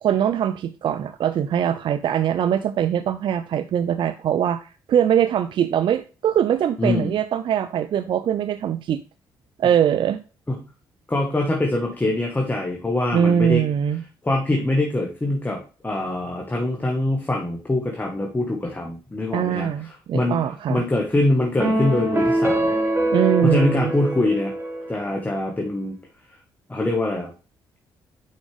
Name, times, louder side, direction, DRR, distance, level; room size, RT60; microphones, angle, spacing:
voice 1, 0.0-9.0 9.6-10.2 13.1-14.0 19.3-20.8 23.1-23.9, right 9 dB, 60° right, 11 dB, 0.4 m, -22 dB
voice 2, 6.8-7.1 10.5-10.6 11.1-13.6 14.2-19.7 20.1-20.4 20.7-22.7 23.4-24.5 24.9-25.9 26.7-27.3, left 2 dB, 20° left, 1 dB, 1.6 m, -23 dB
sound 1, 21.6-25.1, right 1 dB, 25° right, 2.2 m, -23 dB
6.3 x 5.1 x 3.4 m, 0.34 s
supercardioid pair, 55°, 10 cm